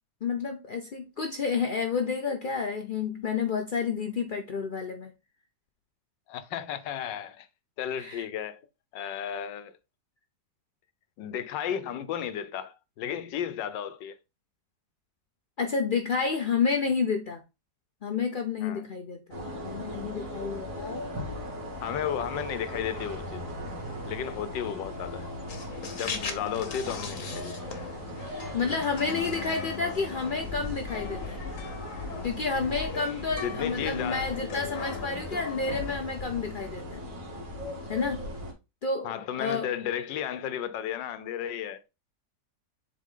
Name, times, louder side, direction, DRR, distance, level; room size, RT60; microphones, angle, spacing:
voice 1, 0.2-5.1 8.0-8.3 15.6-17.4 18.0-21.0 28.5-31.4 32.2-37.0 37.9-38.3 38.8-39.7, left 5 dB, 70° left, 0.4 m, -30 dB
voice 2, 6.3-7.5 7.8-8.6 8.9-9.8 11.2-14.2 18.6-18.9 21.8-23.4 24.1-25.3 25.9-27.5 33.4-34.3 39.0-41.8, left 9 dB, 85° left, 1.4 m, -33 dB
sound 1, 19.3-38.5, left 1 dB, 50° right, 2.3 m, -38 dB
sound 2, 25.5-35.9, left 5 dB, 50° left, 1.4 m, -40 dB
7.6 x 3.5 x 3.7 m
omnidirectional pair, 1.9 m